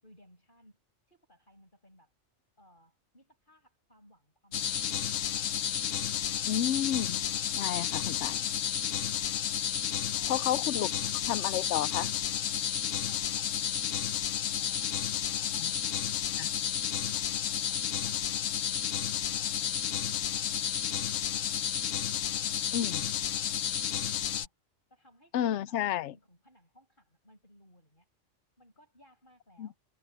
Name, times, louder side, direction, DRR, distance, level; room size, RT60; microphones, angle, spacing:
voice 1, 0.0-0.8 1.1-2.1 2.6-6.4 10.1-11.8 13.1-16.0 16.3-19.0 24.9-25.8 26.1-28.1 28.6-29.8, equal, 40° left, 7.6 m, -60 dB
sound 1, 4.5-24.5, left 9 dB, 90° left, 1.2 m, -31 dB
voice 2, 6.5-7.2 7.5-8.4 10.3-10.9 11.3-12.1 16.4-16.5 22.7-23.0 25.3-26.1 29.6-29.7, left 11 dB, 70° left, 0.9 m, -31 dB
omnidirectional pair, 1.3 m